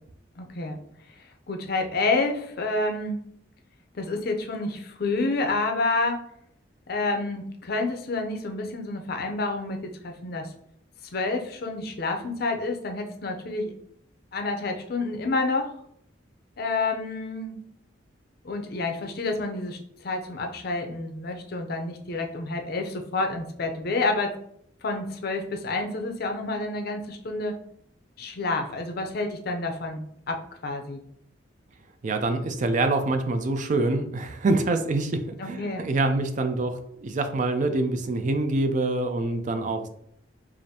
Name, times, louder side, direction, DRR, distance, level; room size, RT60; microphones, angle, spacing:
voice 1, 0.4-0.8 1.2-3.2 4.0-6.2 6.9-10.5 11.1-13.7 14.3-15.7 16.6-17.6 18.4-24.4 24.8-27.6 28.2-31.0 35.4-35.8, left 3 dB, 55° left, 4 dB, 0.5 m, -29 dB
voice 2, 32.0-39.9, right 2 dB, 40° right, 7 dB, 0.4 m, -25 dB
4.9 x 2.5 x 2.7 m, 0.70 s
head